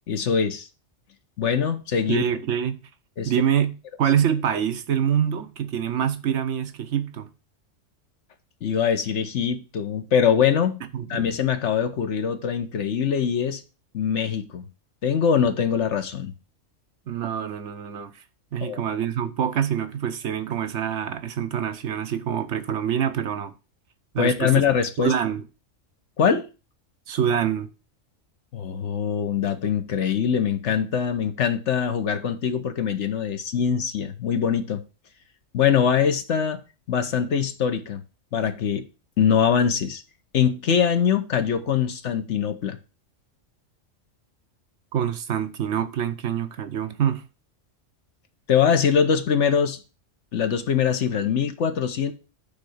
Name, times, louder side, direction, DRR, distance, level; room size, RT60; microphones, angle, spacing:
voice 1, 0.1-0.7 1.4-2.2 3.2-3.3 8.6-10.8 11.1-13.6 13.9-14.6 15.0-16.3 18.6-18.9 24.2-25.1 26.2-26.5 28.5-34.8 35.5-36.6 36.9-38.0 38.3-38.8 39.2-40.0 40.3-42.8 48.5-49.8 50.3-52.1, left 7 dB, 65° left, 1.2 m, -23 dB
voice 2, 2.1-2.8 3.2-7.3 10.9-11.2 17.1-18.2 18.5-23.5 24.1-24.5 25.0-25.4 27.1-27.7 44.9-47.2, right 9 dB, 70° right, 1.1 m, -25 dB
8.5 x 3.4 x 6.4 m
omnidirectional pair, 1.3 m